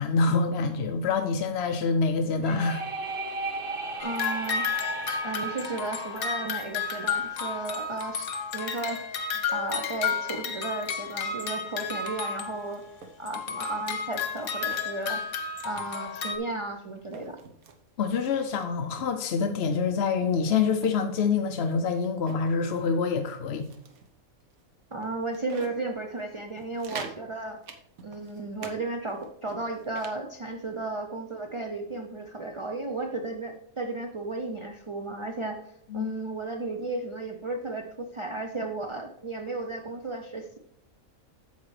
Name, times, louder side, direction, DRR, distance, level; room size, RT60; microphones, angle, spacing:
voice 1, 0.0-2.8 18.0-23.7 35.9-36.1, left 5 dB, 60° left, 6 dB, 0.8 m, -26 dB
sound 1, 2.4-8.1, right 3 dB, 30° right, 0.7 m, -37 dB
sound 2, 4.0-12.9 13.3-16.4, left 5 dB, 85° left, 1.3 m, -32 dB
voice 2, 4.0-4.7 5.2-9.2 9.5-12.8 13.2-15.2 15.6-17.4 24.9-27.6 28.0-35.6 35.9-40.6, right 2 dB, 45° right, 4 dB, 0.4 m, -34 dB
sound 3, 12.4-13.1 13.5-13.6 14.1-15.1 15.3-15.5 15.7-16.5 17.0-17.8 18.2-19.1 19.7-19.8 20.2-22.5 22.9-23.1 23.5-24.1 24.5-24.6 25.0-25.8 26.2-26.3 26.6-27.2 27.6-28.8 29.1-30.2, right 5 dB, 90° right, 1.4 m, -45 dB
9.4 x 7.3 x 3.2 m, 0.76 s
omnidirectional pair, 1.5 m